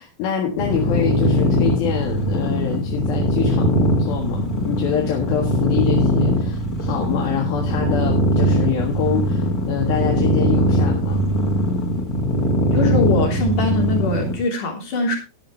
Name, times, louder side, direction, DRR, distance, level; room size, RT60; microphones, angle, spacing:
voice 1, 0.0-11.2, left 7 dB, 85° left, 1 dB, 3.6 m, -26 dB
sound 1, 0.6-14.4, equal, 35° left, 1.7 m, -20 dB
voice 2, 12.7-15.2, left 3 dB, 60° left, 1 dB, 4.8 m, -22 dB
12.5 x 11.0 x 3.2 m, 0.26 s
omnidirectional pair, 4.2 m